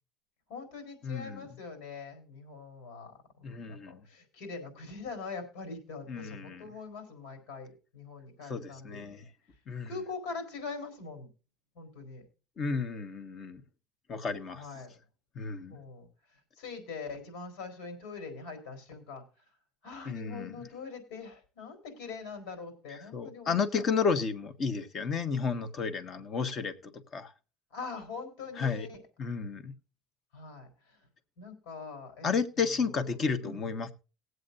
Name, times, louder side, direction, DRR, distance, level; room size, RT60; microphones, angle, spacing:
voice 1, 0.5-9.2 9.9-11.3 11.7-12.3 14.5-14.9 15.7-19.2 19.8-23.8 26.0-26.1 27.7-29.0 30.3-31.1 31.4-33.8, left 4 dB, 85° left, 4.4 m, -43 dB
voice 2, 1.0-1.5 3.4-4.0 6.1-6.6 8.5-9.2 9.7-9.9 12.6-13.6 14.1-14.6 15.3-15.8 20.0-20.6 23.1-27.3 28.6-28.9 29.2-29.7 32.2-33.9, left 5 dB, 35° left, 1.3 m, -32 dB
20.0 x 7.9 x 2.6 m
cardioid pair, 155°, 0 cm